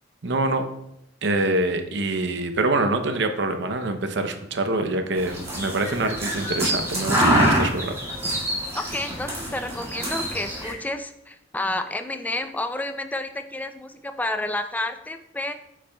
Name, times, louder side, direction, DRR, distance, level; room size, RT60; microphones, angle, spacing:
voice 1, 0.2-0.6 1.2-8.0, right 2 dB, 65° right, 7 dB, 0.7 m, -25 dB
sound 1, 5.2-10.7, equal, 15° right, 2.0 m, -25 dB
voice 2, 8.7-15.5, left 2 dB, 10° left, 8 dB, 0.4 m, -30 dB
8.2 x 6.0 x 2.3 m, 0.80 s
head